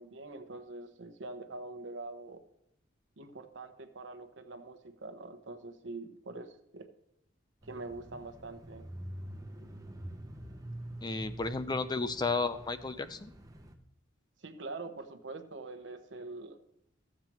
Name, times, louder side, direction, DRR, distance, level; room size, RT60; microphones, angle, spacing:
voice 1, 0.0-2.4 3.2-6.9 7.6-8.8 14.4-16.6, right 3 dB, 75° right, 7 dB, 1.0 m, -44 dB
Bicycle / Mechanisms, 7.6-13.8, right 1 dB, 20° right, 0.8 m, -46 dB
voice 2, 11.0-13.3, left 3 dB, 20° left, 11 dB, 0.5 m, -33 dB
14.5 x 7.4 x 3.0 m, 0.78 s
head